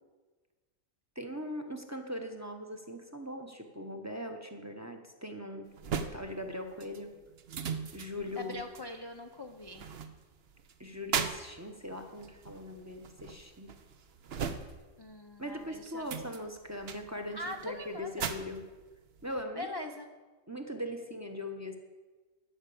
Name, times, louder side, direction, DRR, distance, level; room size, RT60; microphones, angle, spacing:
voice 1, 1.1-5.7 6.1-7.1 7.9-8.6 10.8-13.7 15.4-18.6 19.2-19.9 20.5-21.8, left 1 dB, 15° right, 4 dB, 0.8 m, -40 dB
sound 1, 5.7-15.1 15.4-19.4, right 6 dB, 55° right, 0.9 m, -39 dB
voice 2, 8.3-9.9 15.0-16.2 17.3-18.3 19.5-20.1, left 1 dB, 30° left, 4 dB, 0.4 m, -42 dB
12.0 x 5.7 x 8.4 m, 1.3 s
omnidirectional pair, 1.4 m